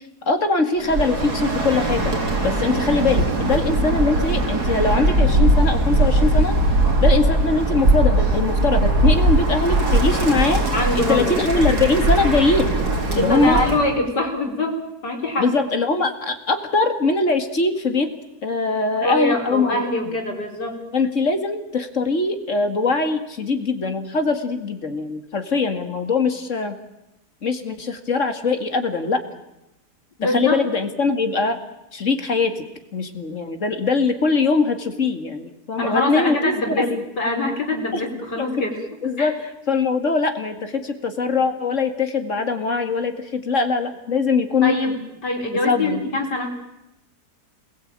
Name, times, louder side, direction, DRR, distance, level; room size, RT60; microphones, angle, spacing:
voice 1, 0.3-2.1 2.4-6.5 7.0-10.6 10.9-12.7 13.1-13.6 15.4-18.1 18.4-19.8 20.9-26.8 27.4-29.2 30.2-31.6 31.9-32.6 32.9-37.0 37.9-38.0 38.4-38.5 39.0-44.7 45.7-46.0, left 3 dB, 45° left, 7 dB, 2.4 m, -22 dB
Bird, 0.8-13.9, right 2 dB, 70° right, 3.9 m, -20 dB
voice 2, 10.7-11.6 13.1-15.5 19.0-20.8 30.2-30.6 35.8-36.9 37.2-38.8 39.2-39.3 44.6-46.6, left 2 dB, 85° left, 3 dB, 4.9 m, -23 dB
27.5 x 20.5 x 8.9 m, 0.92 s
omnidirectional pair, 1.8 m